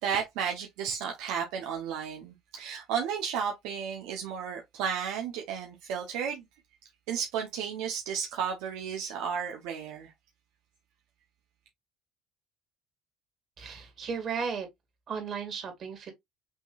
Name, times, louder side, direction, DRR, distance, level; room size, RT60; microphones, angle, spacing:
voice 1, 0.0-6.4 7.1-10.1, right 7 dB, 80° right, 1.0 m, -33 dB
voice 2, 13.6-14.7 15.1-16.1, right 6 dB, 45° right, 2.4 m, -35 dB
6.0 x 3.1 x 2.5 m
supercardioid pair, 100°, 0 cm